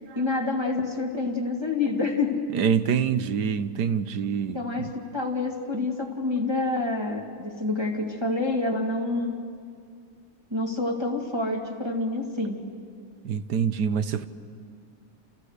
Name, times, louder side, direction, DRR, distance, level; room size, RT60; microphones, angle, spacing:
voice 1, 0.2-2.6 4.5-9.4 10.5-12.6, left 3 dB, 15° right, 2.4 m, -27 dB
voice 2, 2.5-4.9 13.2-14.3, right 7 dB, 90° right, 1.5 m, -26 dB
29.0 x 29.0 x 6.6 m
omnidirectional pair, 1.7 m